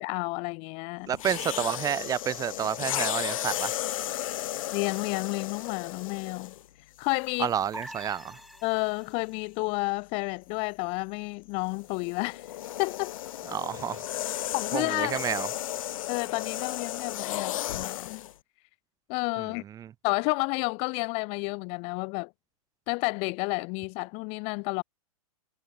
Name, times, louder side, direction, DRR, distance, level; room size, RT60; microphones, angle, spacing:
voice 1, 0.0-1.1 4.7-6.5 7.0-7.5 8.6-12.5 12.8-13.1 14.5-15.2 16.1-18.3 19.1-19.6 20.0-22.3 22.9-24.8, left 32 dB, 30° left, 0.5 m, -30 dB
sound 1, 1.1-6.7 7.5-7.7 11.6-18.3, left 13 dB, 60° left, 1.3 m, -34 dB
voice 2, 1.1-3.8 7.4-8.4 13.5-14.0 14.7-15.5 19.4-19.9, right 9 dB, 20° right, 0.8 m, -30 dB
sound 2, 7.7-9.4, equal, ahead, 1.7 m, -45 dB
hypercardioid pair, 125°, 19 cm